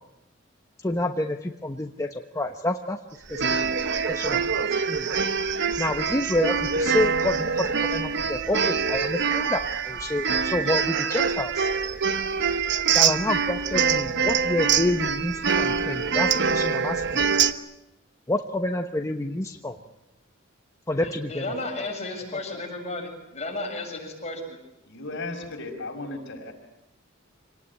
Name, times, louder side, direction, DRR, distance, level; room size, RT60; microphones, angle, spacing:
voice 1, 0.8-3.0 3.3-3.6 4.0-5.1 5.8-11.7 12.9-17.2 18.3-19.8 20.9-21.9, left 1 dB, 15° left, 4 dB, 1.1 m, -28 dB
sound 1, 3.3-17.5, right 6 dB, 60° right, 1.2 m, -24 dB
voice 2, 21.0-24.6, left 2 dB, 35° left, 1 dB, 7.2 m, -33 dB
voice 3, 24.8-26.5, left 2 dB, 60° left, 3 dB, 5.7 m, -35 dB
27.0 x 19.0 x 9.9 m, 0.89 s
head